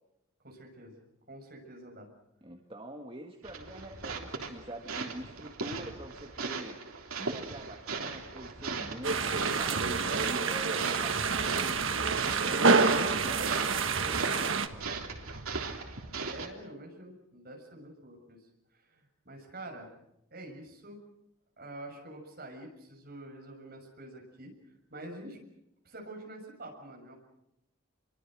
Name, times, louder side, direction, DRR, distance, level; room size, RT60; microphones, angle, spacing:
voice 1, 0.4-1.0 1.3-2.1 16.2-18.4 18.7-20.0 20.3-21.0 21.6-24.6 24.9-25.4 25.8-27.1, right 1 dB, 45° right, 2 dB, 6.6 m, -46 dB
voice 2, 2.4-6.8 7.2-11.8 12.4-14.6, right 1 dB, 25° right, 2 dB, 1.8 m, -45 dB
sound 1, 3.4-16.5, right 4 dB, 85° right, 3.5 m, -38 dB
sound 2, 9.0-14.7, right 4 dB, 65° right, 1.5 m, -27 dB
27.5 x 23.5 x 6.3 m, 0.84 s
head